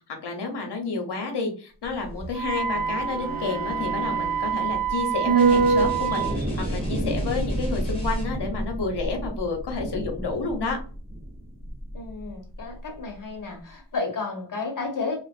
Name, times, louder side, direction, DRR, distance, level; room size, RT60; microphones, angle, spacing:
voice 1, 0.2-10.8, left 4 dB, 60° left, 3 dB, 0.9 m, -30 dB
sound 1, 1.8-12.3 12.6-12.7, right 3 dB, 20° right, 0.6 m, -28 dB
Wind instrument woodwind instrument, 2.3-6.4, right 9 dB, 75° right, 0.6 m, -28 dB
sound 2, 5.4-8.6, left 1 dB, 10° left, 1.0 m, -40 dB
voice 2, 11.9-15.2, left 4 dB, 45° left, 2 dB, 1.1 m, -32 dB
2.5 x 2.2 x 2.4 m, 0.37 s
cardioid pair, 55°, 47 cm